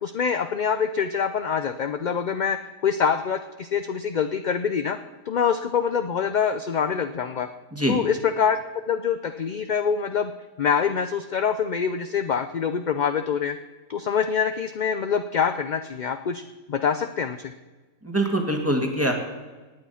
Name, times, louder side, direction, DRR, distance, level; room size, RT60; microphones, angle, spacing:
voice 1, 0.0-5.0 5.3-7.5 7.9-8.6 8.8-10.3 10.6-13.6 13.9-16.4 16.7-17.5, left 7 dB, 50° left, 9 dB, 0.5 m, -25 dB
voice 2, 18.0-19.1, right 1 dB, 10° right, 3 dB, 2.1 m, -23 dB
18.0 x 8.8 x 5.7 m, 1.3 s
omnidirectional pair, 1.4 m